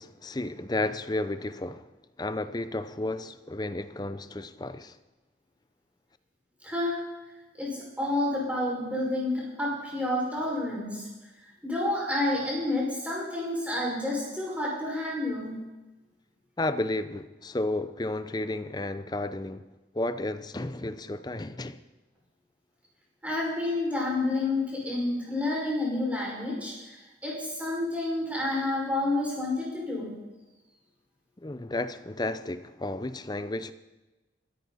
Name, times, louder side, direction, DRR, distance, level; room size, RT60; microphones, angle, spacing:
voice 1, 0.0-1.9 2.2-5.0 16.6-19.6 19.9-21.8 31.4-33.7, left 2 dB, 20° left, 0.6 m, -32 dB
voice 2, 6.6-7.0 7.6-11.1 11.6-15.6 23.2-30.1, left 2 dB, 10° right, 5.7 m, -29 dB
23.0 x 13.5 x 4.2 m
head